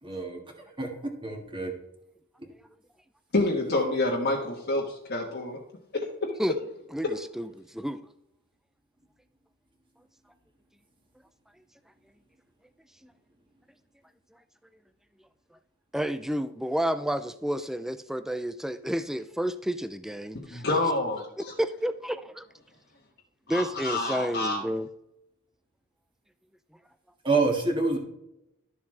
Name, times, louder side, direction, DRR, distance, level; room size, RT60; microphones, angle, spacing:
voice 1, 0.0-0.9 1.2-1.7 27.2-28.0, right 3 dB, 25° right, 2 dB, 1.7 m, -27 dB
voice 2, 3.3-5.6 5.9-6.3 7.0-7.2 20.5-21.5 23.5-24.6, left 2 dB, 50° left, -2 dB, 1.3 m, -28 dB
voice 3, 6.9-8.0 13.0-13.1 15.9-20.6 21.4-22.5 23.5-24.9, equal, ahead, 12 dB, 0.3 m, -30 dB
12.5 x 7.1 x 3.2 m, 0.84 s
head